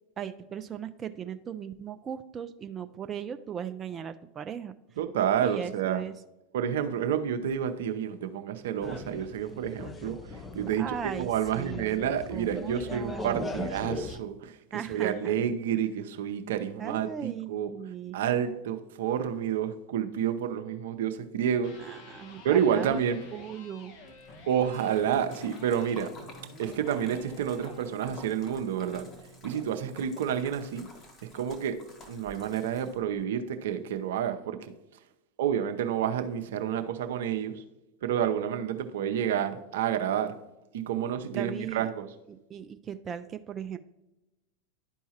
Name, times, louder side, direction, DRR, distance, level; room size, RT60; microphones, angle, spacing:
voice 1, 0.2-4.7 5.4-6.1 10.8-13.5 14.7-15.3 16.8-18.2 21.8-23.0 23.3-23.9 41.3-41.9 42.3-43.8, right 8 dB, 30° right, 8 dB, 0.4 m, -38 dB
voice 2, 5.0-6.0 6.5-14.6 14.9-17.7 18.1-21.7 22.4-23.2 24.5-26.1 26.6-29.1 29.4-30.9 31.3-31.8 32.1-34.7 35.4-37.6 38.0-40.3 40.7-42.1, right 9 dB, 70° right, 8 dB, 0.6 m, -29 dB
sound 1, 8.8-14.2, left 3 dB, 20° left, 0.6 m, -40 dB
Electric guitar, 21.6-29.6, left 2 dB, 60° left, 1.2 m, -50 dB
Splash splatter, 24.1-33.2, left 2 dB, 35° left, 1.6 m, -50 dB
11.5 x 4.6 x 2.9 m, 0.98 s
hypercardioid pair, 95°, 0 cm